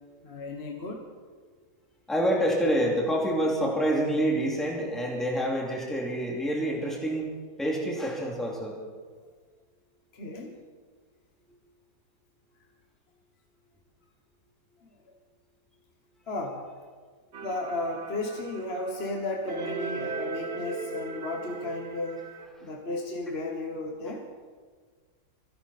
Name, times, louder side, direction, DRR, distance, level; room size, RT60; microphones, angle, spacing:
voice 1, 0.2-1.0 10.1-10.6 16.3-16.6 17.4-22.3 22.6-24.2, left 2 dB, 40° left, 1 dB, 1.5 m, -34 dB
voice 2, 2.1-7.3 7.6-8.7 24.0-24.1, equal, ahead, -2 dB, 2.6 m, -27 dB
sound 1, 17.3-22.5, right 4 dB, 45° right, 0.9 m, -38 dB
26.0 x 11.5 x 4.3 m, 1.6 s
omnidirectional pair, 1.7 m